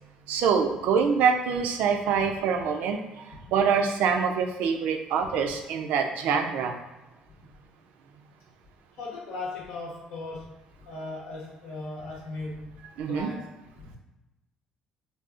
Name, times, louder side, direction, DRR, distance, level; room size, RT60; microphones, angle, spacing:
voice 1, 0.3-3.2 3.5-6.8 13.0-13.3, right 6 dB, 80° right, 5 dB, 0.4 m, -25 dB
voice 2, 9.0-10.6 10.8-12.7 13.0-14.0, left 2 dB, 90° left, -3 dB, 0.9 m, -38 dB
3.8 x 2.3 x 2.4 m, 1.1 s
cardioid pair, 90°, 3 cm